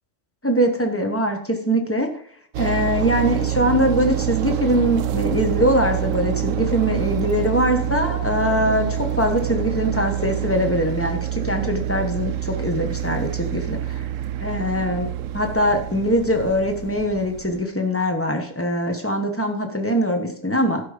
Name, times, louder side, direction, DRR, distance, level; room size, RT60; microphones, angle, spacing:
voice 1, 0.4-2.1 2.6-14.0 14.4-15.1 15.3-20.8, equal, 10° left, 4 dB, 1.2 m, -22 dB
sound 1, 2.5-17.6, right 11 dB, 80° right, 1.0 m, -26 dB
12.0 x 5.5 x 5.1 m, 0.62 s
omnidirectional pair, 1.3 m